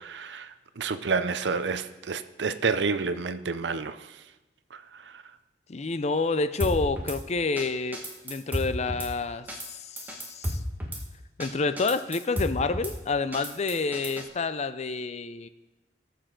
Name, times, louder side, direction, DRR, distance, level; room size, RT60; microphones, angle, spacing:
voice 1, 0.0-4.1 5.1-5.2, right 4 dB, 80° right, 0.6 m, -29 dB
voice 2, 5.7-10.6 11.4-15.5, left 3 dB, 40° left, 0.5 m, -29 dB
Drum kit / Snare drum, 6.6-7.2 7.6-7.7 7.9-9.1 9.5-9.7 10.0-11.0 11.4-11.5 11.8-12.9 13.3-14.3, equal, 10° right, 1.5 m, -33 dB
19.0 x 6.9 x 3.9 m
head